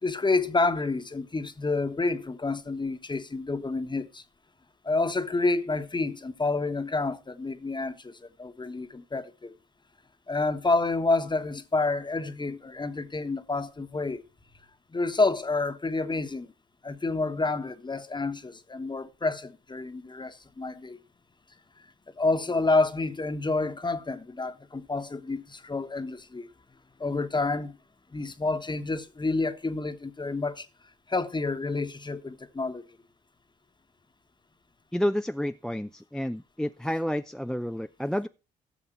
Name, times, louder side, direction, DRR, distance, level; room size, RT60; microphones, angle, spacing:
voice 1, 0.0-4.2 4.8-9.5 10.3-14.2 14.9-16.5 16.8-21.0 22.2-26.5 27.0-27.8 28.1-30.7 31.1-32.8, left 3 dB, 25° left, 1.3 m, -29 dB
voice 2, 34.9-38.3, equal, 5° left, 0.6 m, -30 dB
15.5 x 6.9 x 4.5 m
hypercardioid pair, 45°, 19 cm